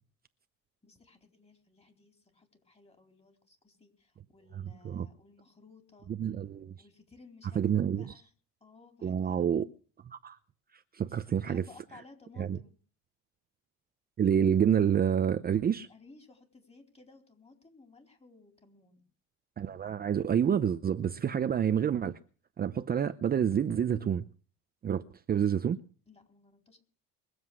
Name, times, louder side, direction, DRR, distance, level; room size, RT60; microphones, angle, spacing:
voice 1, 0.8-6.1 6.8-8.3 8.6-9.7 11.1-12.8 15.8-19.0 26.1-26.8, left 3 dB, 20° left, 4.3 m, -58 dB
voice 2, 6.1-6.7 7.5-8.1 9.0-9.7 10.1-10.4 10.9-11.6 12.4-12.6 14.2-15.9 19.6-22.2 22.6-24.2 24.8-25.0 25.3-25.8, right 8 dB, 30° right, 0.7 m, -28 dB
22.0 x 7.9 x 6.3 m
cardioid pair, 110°, 32 cm